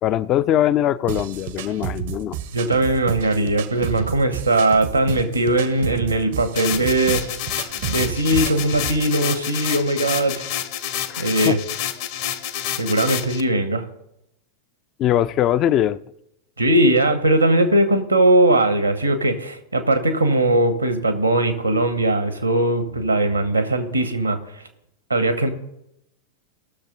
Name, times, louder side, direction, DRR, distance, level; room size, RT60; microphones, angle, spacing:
voice 1, 0.0-2.4 11.1-11.6 15.0-16.0, left 11 dB, 35° left, 14 dB, 0.4 m, -21 dB
sound 1, 1.1-9.0, right 10 dB, 55° right, 0.7 m, -31 dB
voice 2, 2.5-7.2 7.9-10.5 11.2-11.6 12.8-13.9 16.6-24.4 25.1-25.5, right 1 dB, 85° right, 9 dB, 1.4 m, -19 dB
sound 2, 6.6-13.4, left 11 dB, 50° left, 0.9 m, -29 dB
19.0 x 6.6 x 3.9 m, 0.82 s
figure-of-eight pair, 90°, 0 cm